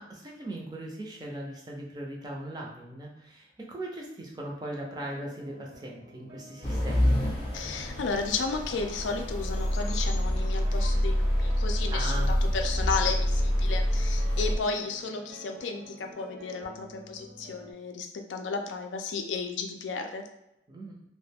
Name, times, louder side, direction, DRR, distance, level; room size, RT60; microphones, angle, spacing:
voice 1, 0.0-7.2 11.9-12.3 20.7-21.0, right 1 dB, 20° right, -1 dB, 0.4 m, -39 dB
sound 1, 4.9-17.7, equal, 60° right, 0.7 m, -50 dB
sound 2, 6.6-14.6, equal, 30° left, 0.5 m, -27 dB
voice 2, 7.5-20.2, left 4 dB, 85° left, 4 dB, 0.4 m, -33 dB
2.3 x 2.1 x 3.3 m, 0.85 s
head